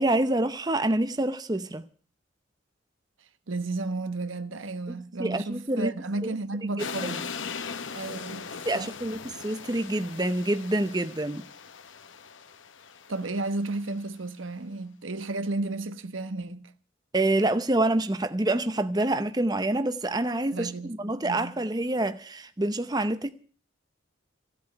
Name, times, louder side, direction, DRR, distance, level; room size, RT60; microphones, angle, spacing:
voice 1, 0.0-1.9 5.2-5.9 6.2-6.3 7.0-7.1 8.7-11.5 17.1-23.3, right 1 dB, 20° right, 0.7 m, -27 dB
voice 2, 3.5-7.2 7.9-8.4 8.7-8.9 13.1-16.7 20.5-21.5, right 2 dB, 80° right, 1.1 m, -33 dB
sound 1, 6.8-13.9, left 5 dB, 75° left, 1.1 m, -39 dB
16.0 x 8.2 x 9.7 m
head